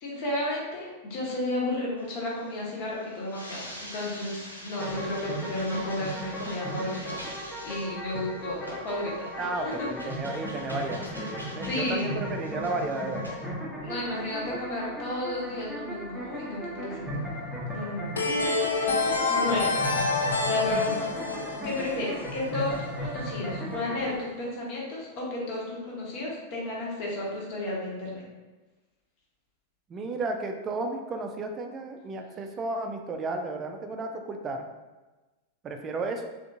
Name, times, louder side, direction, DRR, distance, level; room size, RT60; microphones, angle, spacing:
voice 1, 0.0-9.9 11.6-12.2 13.8-17.1 17.7-18.1 19.3-19.9 20.5-21.0 21.6-28.2, left 1 dB, 45° left, -4 dB, 1.0 m, -33 dB
sound 1, 2.0-13.5, equal, 90° right, 0.5 m, -46 dB
sound 2, 4.8-24.2, equal, 5° left, 0.8 m, -36 dB
voice 2, 9.4-13.4 19.7-19.8 29.9-34.7 35.6-36.3, right 3 dB, 25° right, 4 dB, 0.4 m, -33 dB
sound 3, 18.2-22.8, left 3 dB, 70° left, 0.3 m, -27 dB
3.5 x 2.5 x 2.6 m, 1.2 s
figure-of-eight pair, 90°, 0 cm